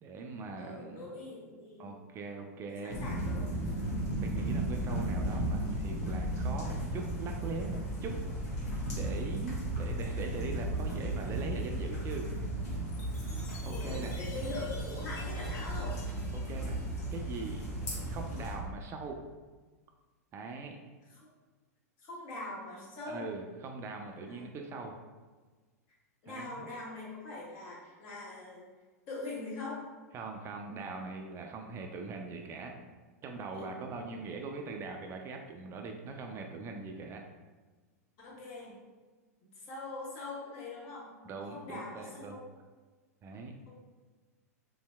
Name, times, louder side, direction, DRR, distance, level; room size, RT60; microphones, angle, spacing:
voice 1, 0.0-1.1 1.8-3.0 4.2-8.2 8.9-12.3 13.6-14.2 16.3-16.8 17.1-17.7 18.0-19.2 20.3-20.8 23.1-24.9 26.3-26.7 30.1-32.7 33.2-37.2 41.3-42.4 43.2-43.5, right 4 dB, 30° right, 3 dB, 0.3 m, -41 dB
voice 2, 0.6-1.8 2.7-3.5 13.7-16.0 21.1-21.3 22.0-23.3 24.3-24.5 26.2-28.7 29.1-29.8 33.5-33.7 38.2-38.8 39.6-41.1 41.5-42.4 43.7-43.8, left 2 dB, 50° left, -5 dB, 1.2 m, -42 dB
sound 1, 2.9-18.6, right 1 dB, 70° left, 1.0 m, -35 dB
Chime, 12.9-17.5, left 3 dB, 30° left, 0.6 m, -52 dB
3.1 x 2.7 x 2.2 m, 1.3 s
hypercardioid pair, 100°, 9 cm